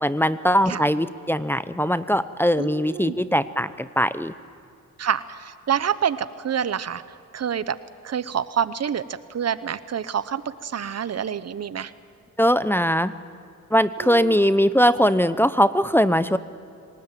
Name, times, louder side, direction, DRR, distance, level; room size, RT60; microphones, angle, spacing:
voice 1, 0.0-4.3 12.4-13.1 13.7-16.4, equal, 5° left, 12 dB, 0.7 m, -20 dB
voice 2, 2.6-3.2 5.0-7.0 7.3-7.8 8.0-9.0 9.3-11.9 14.0-14.4, right 8 dB, 55° right, 15 dB, 0.9 m, -27 dB
27.0 x 19.0 x 9.1 m, 2.6 s
cardioid pair, 85°, 31 cm